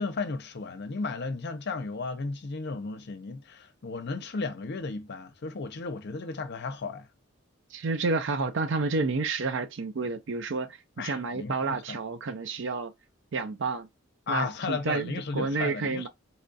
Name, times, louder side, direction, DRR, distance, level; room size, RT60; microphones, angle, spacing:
voice 1, 0.0-7.1 11.0-12.0 14.3-16.1, left 4 dB, 55° left, 0.6 m, -34 dB
voice 2, 7.7-12.9 13.3-13.9 14.3-16.1, right 4 dB, 65° right, 0.5 m, -30 dB
4.1 x 2.3 x 2.6 m
head